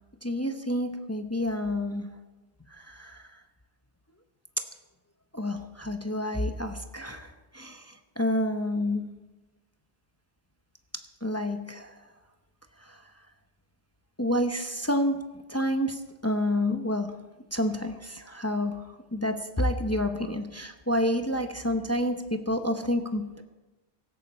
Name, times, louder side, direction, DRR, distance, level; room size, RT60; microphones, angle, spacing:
voice 1, 0.2-2.2 2.7-3.3 5.3-9.1 11.2-11.9 12.8-13.0 14.2-15.2 15.5-17.2 17.5-23.4, left 1 dB, 15° left, 6 dB, 0.8 m, -29 dB
16.5 x 14.0 x 4.3 m, 1.1 s
omnidirectional pair, 1.2 m